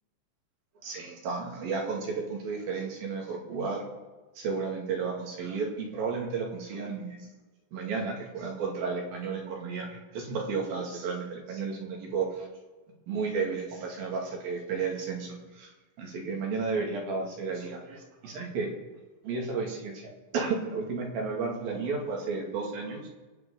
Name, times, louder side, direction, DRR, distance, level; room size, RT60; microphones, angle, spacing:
voice 1, 0.8-3.8 4.4-7.3 7.7-12.5 13.1-15.7 16.0-18.7 19.2-23.1, right 4 dB, 70° right, 0 dB, 4.1 m, -33 dB
27.0 x 9.3 x 3.9 m, 1.2 s
omnidirectional pair, 4.4 m